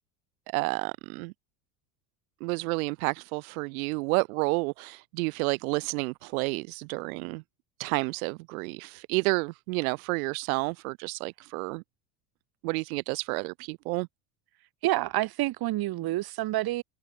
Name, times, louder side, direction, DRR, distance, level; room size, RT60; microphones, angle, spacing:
voice 1, 0.5-1.3 2.4-7.4 7.8-11.8 12.6-14.1, right 27 dB, 85° right, 1.8 m, -30 dB
voice 2, 14.8-16.8, right 17 dB, 60° right, 4.8 m, -28 dB
supercardioid pair, 95°, 41 cm